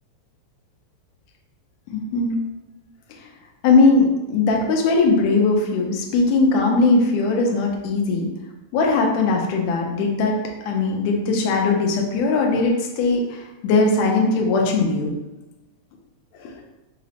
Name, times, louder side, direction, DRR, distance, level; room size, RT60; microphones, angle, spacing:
voice 1, 1.9-2.4 3.6-8.3 8.7-10.4 10.7-15.1 16.4-16.6, left 3 dB, 80° left, 0 dB, 1.7 m, -19 dB
4.9 x 2.0 x 2.8 m, 1.0 s
omnidirectional pair, 3.4 m